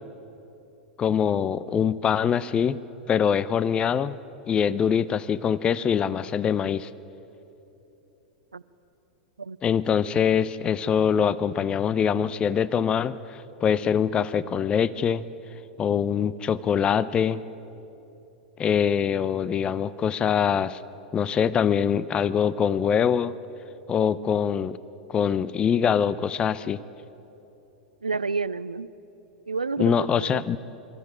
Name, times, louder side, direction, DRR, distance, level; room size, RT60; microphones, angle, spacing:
voice 1, 1.0-2.8 3.1-4.2 4.5-6.9 9.6-15.2 15.8-17.4 18.6-20.8 21.1-23.3 23.9-24.8 25.1-26.8 29.8-30.6, left 7 dB, 25° left, 18 dB, 0.5 m, -23 dB
voice 2, 28.0-28.9 29.5-30.4, right 4 dB, 85° right, 17 dB, 0.5 m, -29 dB
26.0 x 13.5 x 9.4 m, 2.9 s
figure-of-eight pair, 95°, 4 cm